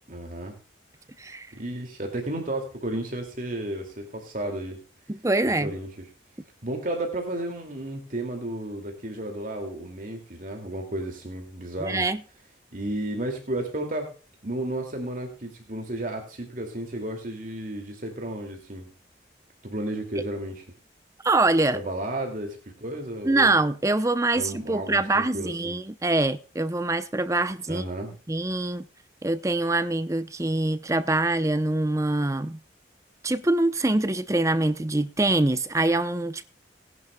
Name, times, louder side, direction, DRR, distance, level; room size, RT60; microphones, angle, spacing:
voice 1, 0.1-0.5 1.5-4.8 5.5-6.0 6.6-12.1 12.7-14.1 14.4-18.9 19.6-20.6 21.7-23.6 24.3-25.8 27.7-28.1, right 1 dB, 45° right, 2.4 m, -33 dB
voice 2, 5.1-5.7 11.8-12.2 20.2-20.3 21.2-21.8 23.2-27.8 28.3-28.9 29.2-32.6 33.2-36.4, right 2 dB, 15° right, 0.6 m, -24 dB
19.0 x 11.0 x 2.3 m
head